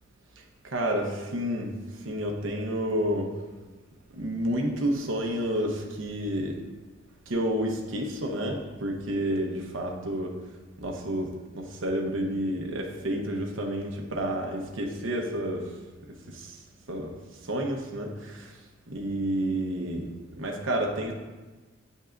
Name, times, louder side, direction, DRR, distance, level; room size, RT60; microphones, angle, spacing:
voice 1, 0.6-1.7 2.0-3.3 4.1-6.6 7.3-10.3 10.8-15.7 16.3-16.6 16.9-17.1 17.4-18.5 18.9-20.1 20.3-21.1, right 1 dB, 75° right, 2 dB, 0.9 m, -30 dB
8.4 x 5.4 x 2.5 m, 1.2 s
head